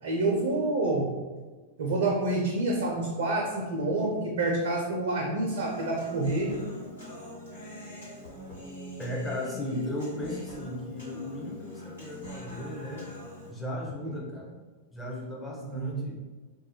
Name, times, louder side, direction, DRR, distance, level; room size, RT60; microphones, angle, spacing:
voice 1, 0.0-1.1 1.8-6.6 14.0-14.1 15.6-16.1, right 2 dB, 60° right, 0 dB, 0.4 m, -28 dB
Human voice, 5.5-13.5, left 1 dB, 70° left, 1.1 m, -43 dB
voice 2, 9.0-13.1 13.5-14.5 14.9-16.2, left 1 dB, 10° left, -3 dB, 0.6 m, -36 dB
2.3 x 2.1 x 2.9 m, 1.4 s
figure-of-eight pair, 95°, 0 cm